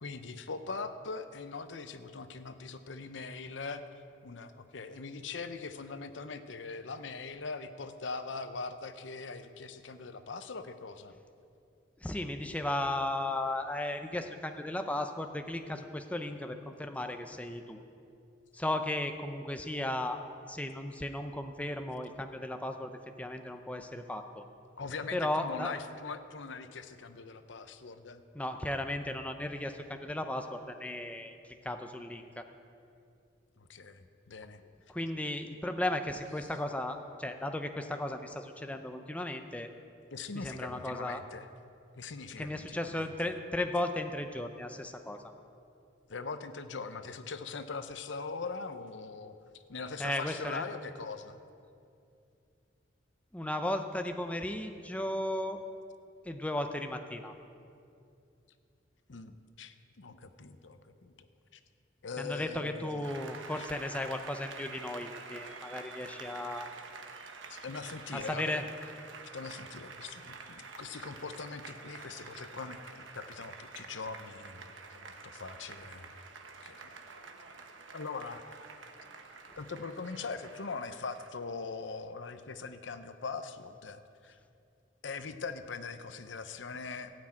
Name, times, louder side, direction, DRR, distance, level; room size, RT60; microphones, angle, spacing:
voice 1, 0.0-3.8 4.2-11.1 24.8-28.2 33.6-34.6 40.1-41.5 42.0-43.4 46.1-49.3 49.7-51.4 59.1-61.1 61.5-61.6 62.0-63.2 63.6-63.7 67.5-68.7 69.3-74.6 74.9-76.1 76.6-76.9 77.9-78.4 79.6-84.4 85.0-87.1, left 4 dB, 80° left, 10 dB, 0.7 m, -41 dB
voice 2, 12.0-17.8 18.5-20.2 20.5-22.9 23.2-24.4 25.1-25.7 28.3-31.4 31.6-32.4 34.9-39.7 40.3-41.2 42.4-45.2 50.0-50.6 53.3-55.6 56.2-57.3 62.2-66.7 68.1-68.6, left 1 dB, 5° left, 6 dB, 0.6 m, -35 dB
Applause, 63.0-81.3, right 4 dB, 90° right, 1.1 m, -48 dB
16.0 x 6.2 x 8.8 m, 2.5 s
head